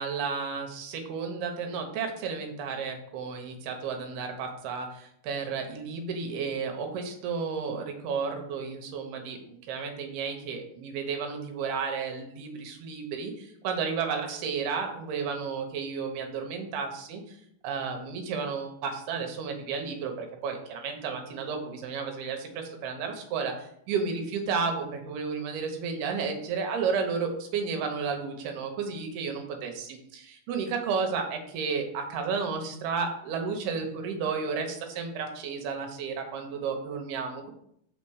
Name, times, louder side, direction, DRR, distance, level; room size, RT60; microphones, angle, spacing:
voice 1, 0.0-37.5, right 5 dB, 80° right, 4 dB, 2.9 m, -32 dB
6.0 x 4.4 x 6.3 m, 0.72 s
omnidirectional pair, 4.6 m